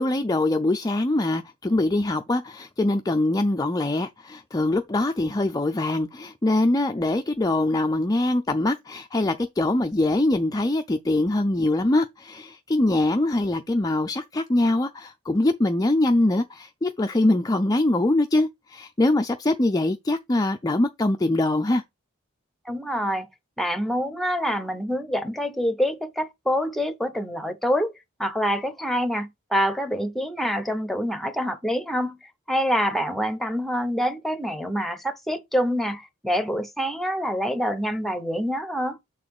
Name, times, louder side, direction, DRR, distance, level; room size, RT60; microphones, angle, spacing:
voice 1, 0.0-21.8, left 2 dB, 15° left, 0.4 m, -23 dB
voice 2, 22.6-23.3 23.6-27.9 28.2-32.2 32.5-39.0, equal, ahead, 0.9 m, -26 dB
7.5 x 4.2 x 4.8 m
head